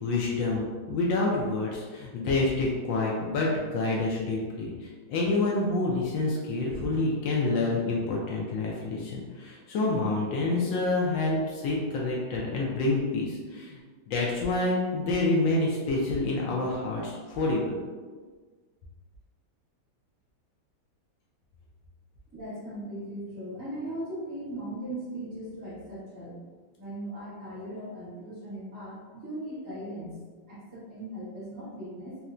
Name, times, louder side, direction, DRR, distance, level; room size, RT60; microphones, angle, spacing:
voice 1, 0.0-4.7 5.1-13.8 14.1-17.8, left 2 dB, 75° left, -3 dB, 1.2 m, -27 dB
voice 2, 22.3-26.4 26.8-30.2 30.5-32.2, right 1 dB, 20° right, -10 dB, 0.6 m, -38 dB
4.2 x 2.1 x 2.4 m, 1.4 s
omnidirectional pair, 2.3 m